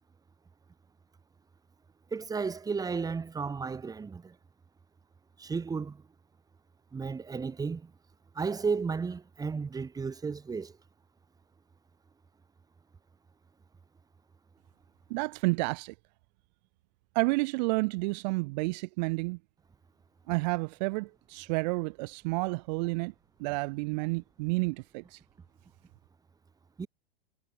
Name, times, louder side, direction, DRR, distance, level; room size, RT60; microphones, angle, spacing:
voice 1, 2.1-4.3 5.4-6.0 6.9-7.9 8.4-10.7 26.8-26.9, right 5 dB, 10° right, 2.4 m, -33 dB
voice 2, 15.1-15.9 17.1-19.4 20.3-23.1 23.4-25.2, right 27 dB, 45° right, 6.0 m, -30 dB
figure-of-eight pair, 100°, 30 cm